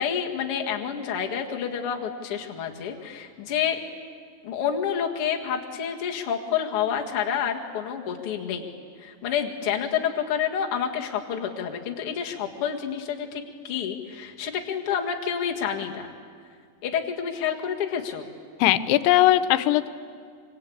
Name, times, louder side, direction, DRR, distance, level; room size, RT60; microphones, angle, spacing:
voice 1, 0.0-3.8 4.4-8.7 9.0-16.1 16.8-18.3, left 8 dB, 50° left, 1 dB, 1.7 m, -28 dB
voice 2, 18.6-19.9, left 14 dB, 85° left, 12 dB, 3.1 m, -19 dB
25.5 x 25.0 x 8.6 m, 2.1 s
omnidirectional pair, 5.2 m